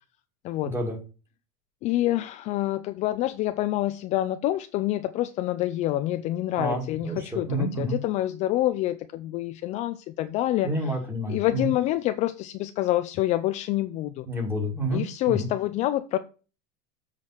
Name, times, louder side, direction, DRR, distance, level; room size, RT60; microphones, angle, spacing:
voice 1, 0.6-1.0 6.6-8.0 10.6-11.7 14.3-15.5, equal, 10° right, 2.1 m, -29 dB
voice 2, 1.8-10.9 11.3-14.3 14.9-16.2, left 15 dB, 35° left, 0.4 m, -27 dB
7.4 x 4.8 x 5.7 m
cardioid pair, 165°, 21 cm